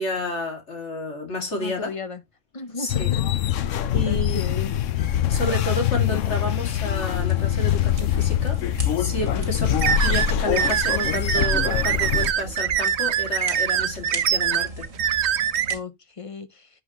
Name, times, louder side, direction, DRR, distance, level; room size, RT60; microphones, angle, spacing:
voice 1, 0.0-1.9 2.8-3.1 3.9-4.7 5.3-8.6 9.0-9.7 10.0-14.9, left 1 dB, 60° left, 2.7 m, -30 dB
voice 2, 1.6-2.2 2.5-4.8 9.3-9.6 15.7-16.7, left 4 dB, 30° left, 0.7 m, -35 dB
sound 1, 2.9-12.3, left 10 dB, 75° left, 1.0 m, -23 dB
sound 2, 7.2-15.8, right 2 dB, 80° right, 2.6 m, -39 dB
sound 3, 9.8-15.7, right 9 dB, 60° right, 0.9 m, -23 dB
10.5 x 6.3 x 3.0 m
omnidirectional pair, 1.3 m